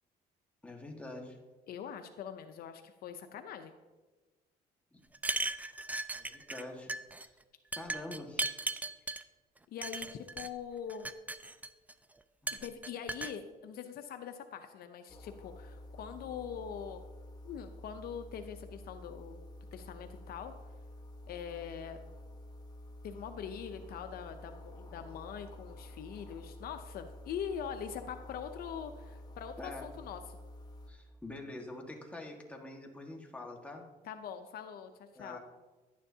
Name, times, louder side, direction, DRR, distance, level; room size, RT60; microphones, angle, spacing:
voice 1, 0.6-1.4 4.9-5.0 6.1-6.9 7.8-8.7 12.4-12.5 29.6-29.9 30.9-33.8 35.1-35.4, left 2 dB, 10° left, 0 dB, 1.6 m, -45 dB
voice 2, 1.7-3.7 9.7-11.1 12.5-17.0 17.4-19.4 19.7-20.5 21.3-22.0 23.0-30.4 34.0-35.4, left 8 dB, 65° left, 7 dB, 0.6 m, -43 dB
sound 1, 5.1-6.6 6.9-7.3 7.7-9.2 9.8-10.5 10.9-11.9 12.5-13.3, right 2 dB, 10° right, 0.4 m, -37 dB
sound 2, 15.1-30.9, left 1 dB, 25° left, 1.2 m, -50 dB
11.0 x 9.4 x 2.8 m, 1.2 s
cardioid pair, 110°, 17 cm